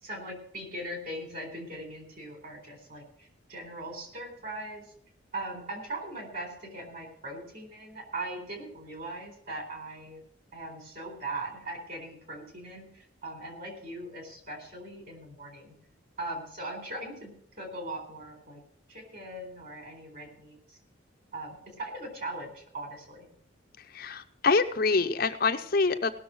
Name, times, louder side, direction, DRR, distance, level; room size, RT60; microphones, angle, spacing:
voice 1, 0.0-4.9 5.3-10.2 10.5-15.7 16.2-18.6 18.9-20.8 21.3-23.3, right 1 dB, 45° right, 2 dB, 4.2 m, -40 dB
voice 2, 23.8-26.1, left 4 dB, 50° left, 7 dB, 0.6 m, -26 dB
17.5 x 6.7 x 6.3 m, 0.65 s
head